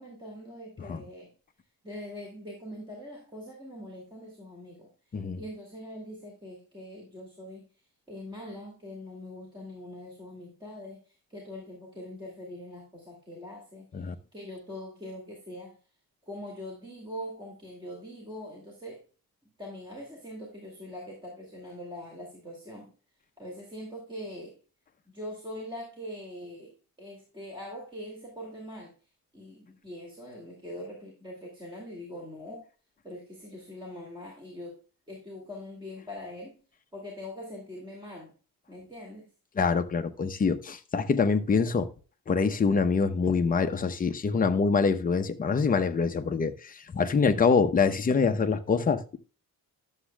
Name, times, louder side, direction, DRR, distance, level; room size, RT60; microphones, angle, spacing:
voice 1, 0.0-1.3 1.8-4.9 5.4-7.7 8.1-15.8 16.2-19.0 19.6-22.9 23.4-24.6 25.1-28.9 29.3-32.7 33.0-34.8 35.1-36.6 36.9-38.3 38.7-39.3, left 1 dB, 15° right, 2.3 m, -42 dB
voice 2, 39.6-41.9 42.3-49.2, left 5 dB, 25° left, 0.7 m, -25 dB
11.5 x 7.3 x 2.2 m
cardioid pair, 160°, 35 cm